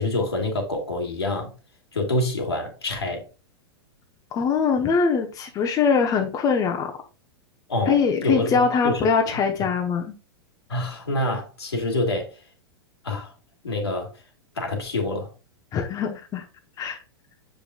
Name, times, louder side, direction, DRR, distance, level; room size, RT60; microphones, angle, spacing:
voice 1, 0.0-1.5 1.9-3.2 7.7-9.4 10.7-12.3 13.0-13.3 13.6-14.1 14.6-15.3, left 2 dB, 80° left, 2.3 m, -27 dB
voice 2, 4.3-6.9 7.9-10.1 15.7-16.4 16.8-17.0, left 6 dB, 25° left, 1.0 m, -22 dB
7.3 x 5.3 x 2.4 m
figure-of-eight pair, 100°, 13 cm